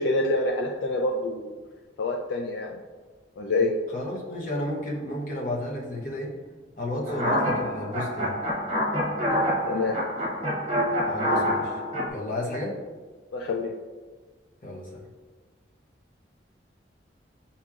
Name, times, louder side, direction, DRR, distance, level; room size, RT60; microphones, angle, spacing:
voice 1, 0.0-1.5 2.0-2.8 3.4-3.7 9.6-10.0 13.3-13.7, left 2 dB, 80° left, 0 dB, 0.3 m, -26 dB
voice 2, 3.9-6.3 6.8-8.4 11.1-11.8 12.1-12.8 14.6-15.0, left 1 dB, 45° left, -3 dB, 0.8 m, -32 dB
sound 1, 7.1-12.1, equal, 35° right, 0.8 m, -27 dB
6.8 x 2.8 x 2.4 m, 1.4 s
head